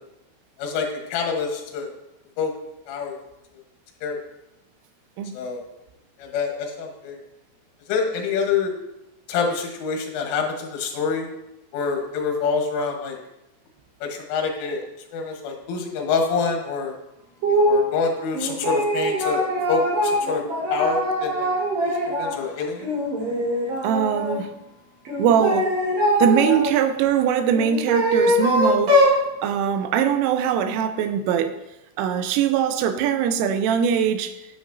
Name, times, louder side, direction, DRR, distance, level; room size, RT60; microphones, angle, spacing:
voice 1, 0.6-1.9 2.4-2.5 2.9-3.2 4.0-4.2 5.3-5.7 6.2-7.2 7.9-8.7 9.3-11.3 11.7-13.2 14.0-14.8 15.1-17.0 17.7-20.4 20.7-21.5 22.1-22.9, left 5 dB, 85° left, 2 dB, 3.8 m, -26 dB
sound 1, 17.4-17.9 18.3-22.4 22.8-24.4 25.1-26.7 27.5-29.2, equal, 50° right, 3.5 m, -22 dB
voice 2, 23.8-24.5 25.2-25.7 26.2-31.5 32.0-34.3, right 8 dB, 90° right, 9 dB, 3.2 m, -22 dB
9.1 x 9.0 x 2.6 m, 0.91 s
omnidirectional pair, 5.6 m